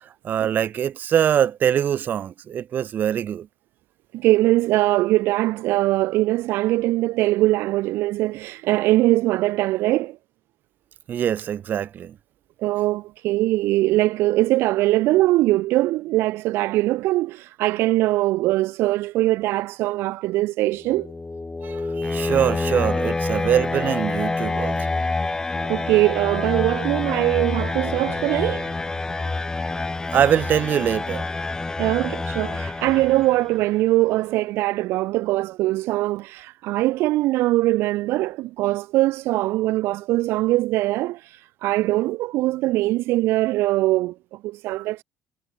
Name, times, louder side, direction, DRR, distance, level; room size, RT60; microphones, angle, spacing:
voice 1, 0.0-3.5 11.1-12.2 21.6-25.0 30.1-31.3, right 9 dB, 45° right, 2.7 m, -23 dB
voice 2, 4.1-10.2 12.6-21.1 25.6-28.7 31.8-41.2 41.6-45.0, right 17 dB, 75° right, 3.3 m, -22 dB
sound 1, 20.8-33.6, left 3 dB, 15° left, 4.4 m, -27 dB
cardioid pair, 115°, 4 cm